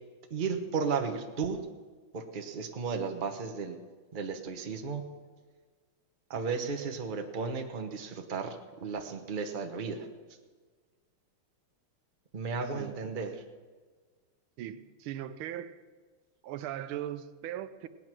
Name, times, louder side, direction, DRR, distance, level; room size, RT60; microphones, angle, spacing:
voice 1, 0.3-1.6 2.1-3.8 4.1-5.0 6.3-10.1 12.3-13.4, right 5 dB, 35° right, 5 dB, 0.9 m, -34 dB
voice 2, 14.6-15.8 16.4-17.9, right 11 dB, 90° right, 12 dB, 1.5 m, -39 dB
18.0 x 9.7 x 6.1 m, 1.4 s
omnidirectional pair, 2.2 m